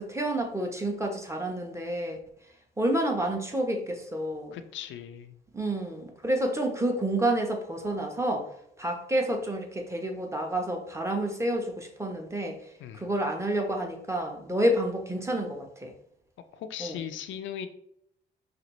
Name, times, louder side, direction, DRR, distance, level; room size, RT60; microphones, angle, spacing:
voice 1, 0.0-2.2 2.8-4.6 5.5-8.5 8.8-12.6 12.9-15.9 16.8-17.0, right 1 dB, 15° right, 3 dB, 0.8 m, -29 dB
voice 2, 4.5-5.3 12.8-13.1 16.5-17.7, left 9 dB, 75° left, 9 dB, 0.4 m, -38 dB
5.0 x 2.5 x 3.0 m, 0.74 s
cardioid pair, 90°, 20 cm